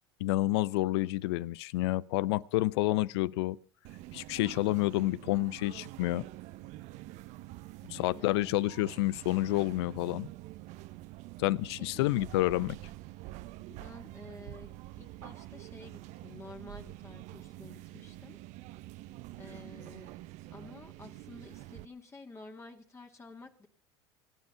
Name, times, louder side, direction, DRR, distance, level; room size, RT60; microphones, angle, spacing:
voice 1, 0.2-3.6 4.1-6.2 7.9-10.3 11.4-12.8, left 18 dB, 75° left, 0.7 m, -29 dB
sound 1, 3.8-21.9, right 17 dB, 60° right, 0.9 m, -47 dB
voice 2, 7.9-8.5 12.0-12.1 13.7-14.7 15.0-18.4 19.4-20.1 20.5-23.7, left 3 dB, 20° left, 2.2 m, -51 dB
24.5 x 8.9 x 5.6 m
hypercardioid pair, 90°, 14 cm